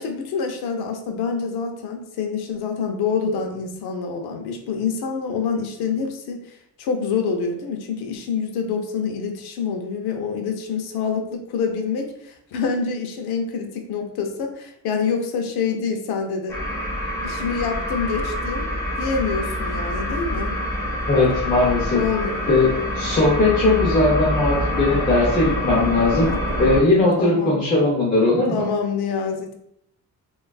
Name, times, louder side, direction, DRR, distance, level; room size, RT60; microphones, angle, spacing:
voice 1, 0.0-16.6 17.2-18.7 19.0-20.6 21.9-22.4 25.9-26.4 27.2-27.6 28.5-29.5, left 5 dB, 85° left, 3 dB, 0.5 m, -26 dB
sound 1, 16.5-26.8, equal, 10° left, 1.0 m, -26 dB
voice 2, 21.1-22.0 22.5-26.3 26.6-28.6, left 2 dB, 25° left, -5 dB, 0.5 m, -19 dB
3.2 x 2.3 x 2.2 m, 0.73 s
cardioid pair, 155°, 37 cm